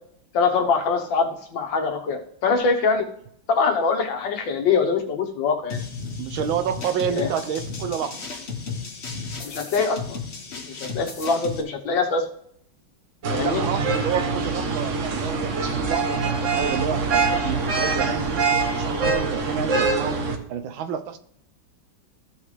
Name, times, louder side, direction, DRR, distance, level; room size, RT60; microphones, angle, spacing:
voice 1, 0.3-3.1 3.5-5.8 7.1-7.3 9.4-10.2 10.5-12.2 13.3-13.6, left 4 dB, 70° left, 3 dB, 1.8 m, -23 dB
sound 1, 5.7-11.6, left 4 dB, 35° left, 1.3 m, -34 dB
voice 2, 6.2-8.2 13.4-18.4 18.8-20.2 20.5-21.2, right 8 dB, 80° right, 10 dB, 1.5 m, -29 dB
sound 2, 13.2-20.4, right 4 dB, 50° right, 1.0 m, -24 dB
14.5 x 5.6 x 3.3 m, 0.68 s
omnidirectional pair, 2.2 m